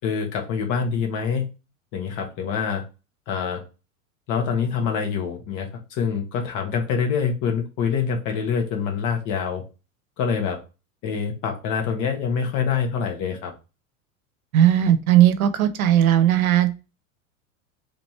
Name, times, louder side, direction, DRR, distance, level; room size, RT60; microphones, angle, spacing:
voice 1, 0.0-1.5 1.9-2.8 3.3-3.6 4.3-9.6 10.2-10.6 11.0-13.5, left 6 dB, 45° left, 3 dB, 1.4 m, -25 dB
voice 2, 14.5-16.9, right 11 dB, 80° right, 9 dB, 0.8 m, -17 dB
3.3 x 3.1 x 4.2 m, 0.29 s
hypercardioid pair, 100°, 42 cm